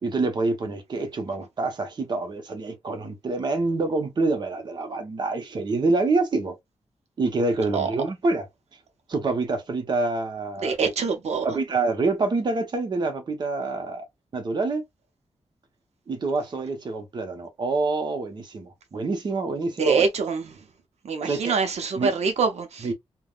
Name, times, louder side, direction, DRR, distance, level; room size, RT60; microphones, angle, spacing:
voice 1, 0.0-6.5 7.2-8.5 9.1-10.9 11.4-14.0 14.3-14.8 16.1-20.1 21.2-21.5 22.0-22.1 22.8-22.9, right 3 dB, 45° right, 0.8 m, -26 dB
voice 2, 10.6-11.6 19.8-20.5 21.0-22.9, right 5 dB, 80° right, 0.6 m, -25 dB
3.4 x 2.1 x 2.3 m
wide cardioid pair, 160°, 11 cm